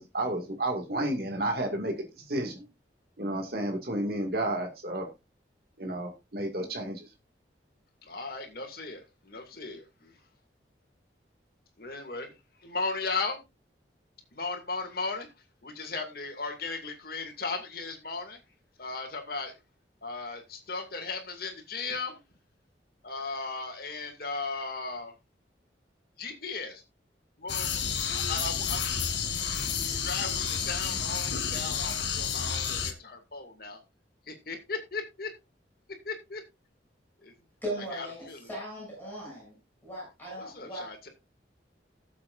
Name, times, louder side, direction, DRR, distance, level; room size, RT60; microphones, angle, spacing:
voice 1, 0.0-1.9 2.3-2.6 3.2-5.1 5.8-7.0, right 1 dB, 55° right, 2.2 m, -31 dB
voice 2, 8.0-10.2 11.8-12.3 12.6-13.4 14.3-15.3 15.6-18.4 18.8-19.5 20.0-22.2 23.0-25.1 26.2-26.8 27.4-29.2 29.5-33.8 34.3-35.3 36.0-36.4 37.2-37.3 38.0-38.5 40.4-41.1, left 4 dB, 55° left, 2.4 m, -36 dB
sound 1, 27.5-32.9, left 7 dB, 80° left, 1.5 m, -30 dB
voice 3, 37.6-39.6 39.8-41.1, right 1 dB, 10° left, 7.8 m, -38 dB
17.0 x 7.5 x 2.6 m
head